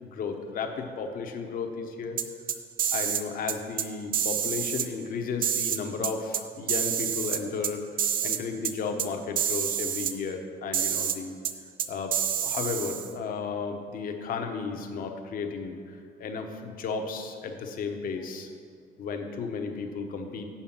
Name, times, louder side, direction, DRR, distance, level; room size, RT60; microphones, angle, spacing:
voice 1, 0.0-2.2 2.9-7.8 8.2-11.3 11.9-12.1 12.4-18.5 19.0-20.5, left 5 dB, 55° left, 4 dB, 0.9 m, -34 dB
sound 1, 2.2-3.2 3.5-3.9 4.1-4.9 5.4-6.4 6.7-7.7 8.0-8.4 8.6-8.7 9.0-9.1 9.4-10.1 10.7-11.2 11.4-11.5 11.8-13.1, right 9 dB, 55° right, 0.6 m, -28 dB
6.8 x 5.7 x 7.2 m, 2.1 s
cardioid pair, 110°, 17 cm